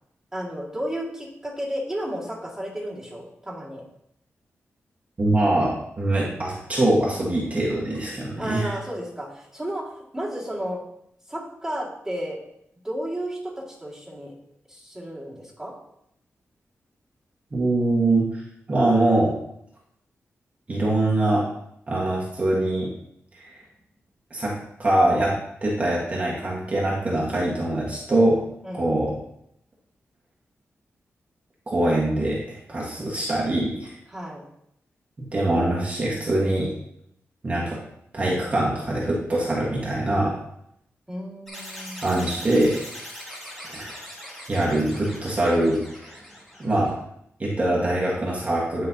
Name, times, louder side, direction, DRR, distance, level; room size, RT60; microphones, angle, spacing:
voice 1, 0.3-3.8 8.4-10.8 11.3-12.4 12.8-14.3 14.7-15.7 28.6-28.9 33.0-33.2 34.1-34.4 41.1-42.1, equal, 10° right, -5 dB, 2.1 m, -33 dB
voice 2, 5.2-8.7 17.5-18.4 18.7-19.3 20.7-21.4 21.9-22.9 23.3-23.6 24.3-24.5 24.8-25.3 25.6-28.4 28.7-29.1 31.7-33.9 35.2-36.7 37.4-37.8 38.1-40.3 42.0-42.7 43.7-43.9 44.5-46.2 46.6-46.9 47.4-48.9, right 1 dB, 30° right, -5 dB, 1.5 m, -23 dB
sound 1, 41.5-46.9, equal, 5° left, 2.3 m, -40 dB
9.8 x 5.4 x 2.8 m, 0.75 s
wide cardioid pair, 170°, 5 cm